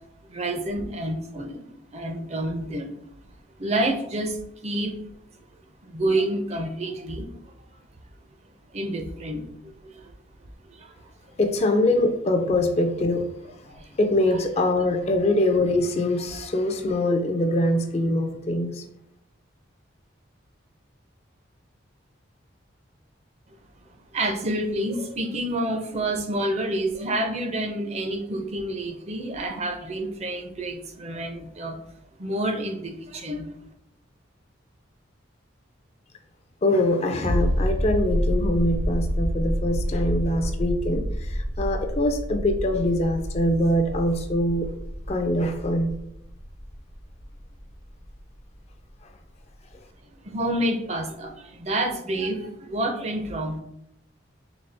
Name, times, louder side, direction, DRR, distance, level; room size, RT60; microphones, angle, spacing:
voice 1, 0.3-1.6 1.9-3.0 3.6-5.0 5.8-7.3 8.7-10.1 10.7-10.9 13.7-13.9 14.8-15.0 24.1-31.8 32.2-33.5 50.2-53.6, right 1 dB, 30° right, 4 dB, 0.5 m, -28 dB
voice 2, 11.4-13.3 14.0-18.8 36.6-44.7 45.1-45.9, left 1 dB, 30° left, 5 dB, 0.4 m, -23 dB
sound 1, 37.2-48.6 48.9-49.0, equal, 70° right, 0.8 m, -28 dB
4.0 x 3.4 x 3.3 m, 0.79 s
head